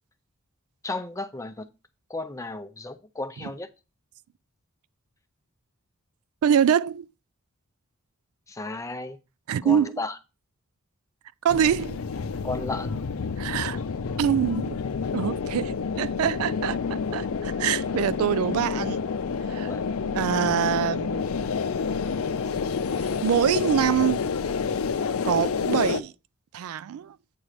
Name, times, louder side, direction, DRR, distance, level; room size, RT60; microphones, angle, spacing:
voice 1, 0.8-1.6 2.1-3.7 8.5-9.2 9.6-10.2 12.4-13.0 19.5-19.8, left 2 dB, 15° left, 0.5 m, -34 dB
voice 2, 6.4-7.1 9.5-9.9 11.4-12.0 13.4-13.8 14.2-14.8 15.1-19.0 19.5-19.7 20.2-21.2 23.2-24.2 25.2-26.1 26.5-27.1, right 9 dB, 80° right, 0.3 m, -24 dB
sound 1, 11.5-26.0, left 5 dB, 75° left, 0.5 m, -29 dB
8.6 x 3.1 x 6.5 m
head